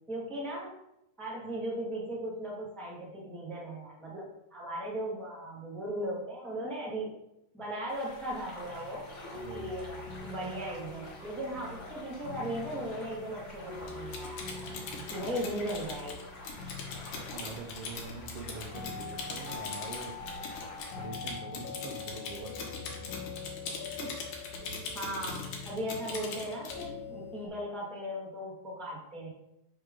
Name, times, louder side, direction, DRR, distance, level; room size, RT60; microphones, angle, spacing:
voice 1, 0.1-0.8 1.2-7.1 7.5-9.1 9.5-14.4 15.1-16.5 23.6-24.2 24.5-24.7 24.9-29.3, right 1 dB, ahead, -4 dB, 1.0 m, -37 dB
sound 1, 7.9-21.1, left 1 dB, 25° left, 1.9 m, -48 dB
sound 2, 8.6-27.5, left 5 dB, 60° left, 2.2 m, -45 dB
voice 2, 9.3-9.7 14.7-15.0 17.3-20.5 21.0-23.2, right 5 dB, 85° right, 2 dB, 1.3 m, -45 dB
Typing, 13.9-26.9, left 4 dB, 85° left, 2.8 m, -41 dB
7.7 x 3.7 x 5.1 m, 0.83 s
omnidirectional pair, 3.4 m